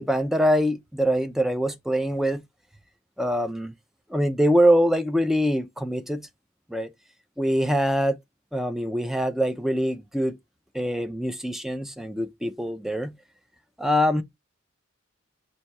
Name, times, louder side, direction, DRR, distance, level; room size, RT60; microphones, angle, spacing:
voice 1, 0.0-2.4 3.2-3.7 4.1-6.3 6.7-6.9 7.4-8.2 8.5-10.4 10.7-13.1 13.8-14.2, equal, ahead, 0.4 m, -24 dB
4.2 x 2.7 x 4.6 m
head